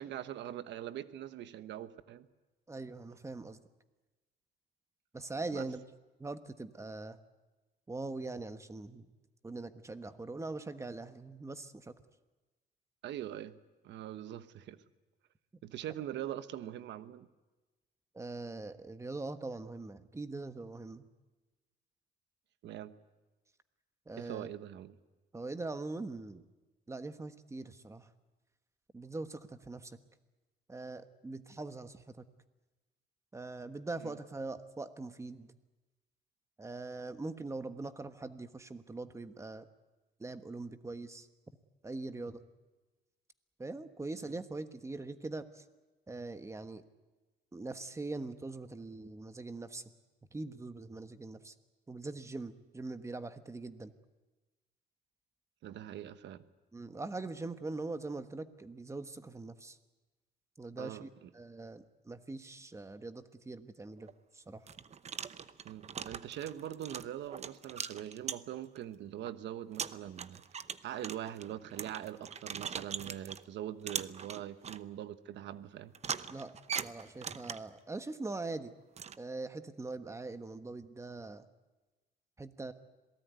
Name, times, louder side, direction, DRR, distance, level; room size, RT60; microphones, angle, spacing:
voice 1, 0.0-2.3 5.5-5.7 13.0-13.5 13.8-14.8 15.6-17.3 22.6-22.9 24.2-24.9 34.0-34.1 55.6-56.4 60.8-61.3 65.6-70.4 70.8-75.9, right 11 dB, 85° right, 13 dB, 1.2 m, -42 dB
voice 2, 2.7-3.6 5.1-5.8 6.2-7.2 7.9-9.1 9.4-11.9 18.1-21.0 24.1-24.5 25.3-26.4 26.9-28.1 28.9-30.0 30.7-32.3 33.3-35.5 36.6-39.7 40.2-41.3 41.8-42.4 43.6-45.6 46.1-46.8 47.5-49.8 50.3-51.5 51.9-53.9 56.7-59.8 60.6-64.6 76.3-78.7 79.2-81.5 82.4-82.7, right 3 dB, 15° right, 10 dB, 1.3 m, -42 dB
sound 1, 64.0-64.1 64.7-68.8 69.3-69.4 69.7-73.5 73.9-74.8 75.9-77.8 79.0-79.2, right 7 dB, 40° right, 0.8 m, -41 dB
27.0 x 18.5 x 9.4 m, 1.2 s
cardioid pair, 135°, 18 cm